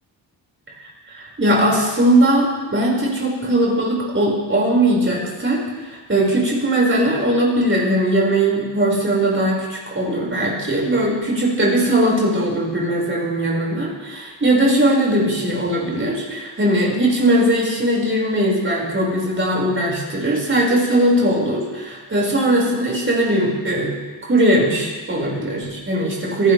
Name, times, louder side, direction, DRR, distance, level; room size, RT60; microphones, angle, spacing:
voice 1, 0.8-23.9 24.2-26.5, right 1 dB, 25° right, -3 dB, 6.0 m, -19 dB
28.0 x 12.0 x 3.6 m, 1.3 s
cardioid pair, 95°, 47 cm